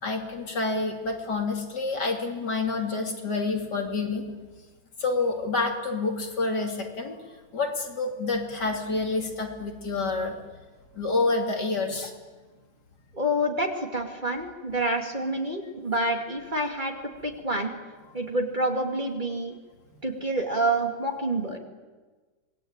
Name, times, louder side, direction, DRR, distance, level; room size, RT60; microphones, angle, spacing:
voice 1, 0.0-4.2 5.0-7.2 7.5-10.4 10.9-12.1, left 3 dB, 60° left, 2 dB, 3.4 m, -28 dB
voice 2, 13.1-16.9 17.2-17.7 18.1-19.5 20.0-21.6, right 1 dB, 25° right, 2 dB, 2.6 m, -27 dB
27.0 x 20.0 x 8.9 m, 1.3 s
omnidirectional pair, 2.1 m